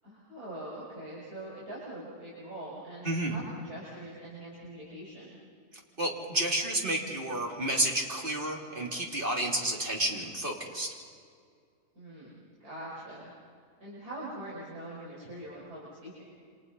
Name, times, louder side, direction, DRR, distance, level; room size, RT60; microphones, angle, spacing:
voice 1, 0.0-5.4 11.9-13.3 13.8-16.3, right 1 dB, 75° right, -8 dB, 6.7 m, -43 dB
voice 2, 3.0-3.4 6.0-10.9, right 1 dB, 35° right, 0 dB, 3.6 m, -30 dB
29.0 x 26.5 x 5.6 m, 2.2 s
omnidirectional pair, 1.6 m